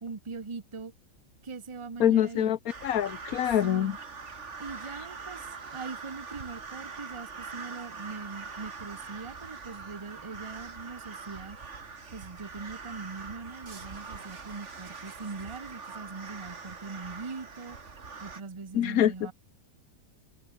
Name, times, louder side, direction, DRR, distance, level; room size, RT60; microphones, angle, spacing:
voice 1, 0.0-0.9 1.4-2.5 3.6-4.0 4.6-11.6 12.1-17.8 18.2-19.3, right 4 dB, 20° right, 1.0 m, -41 dB
voice 2, 2.0-3.9 18.7-19.1, left 10 dB, 65° left, 1.2 m, -25 dB
sound 1, 2.7-18.4, right 4 dB, 45° right, 2.3 m, -43 dB
omnidirectional pair, 1.7 m